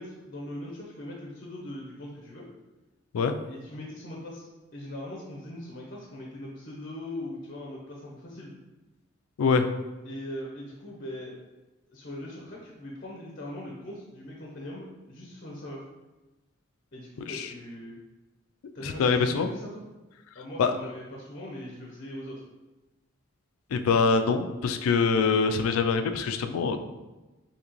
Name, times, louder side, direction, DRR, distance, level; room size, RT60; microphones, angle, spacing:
voice 1, 0.0-2.5 3.5-4.5 4.7-8.5 10.0-11.4 11.9-15.8 16.9-18.0 18.7-19.9 20.3-22.4, left 1 dB, 45° left, -2 dB, 0.6 m, -40 dB
voice 2, 18.8-19.5 20.6-20.7 23.7-26.8, left 5 dB, 85° left, 8 dB, 0.3 m, -24 dB
3.8 x 2.8 x 3.0 m, 1.1 s
head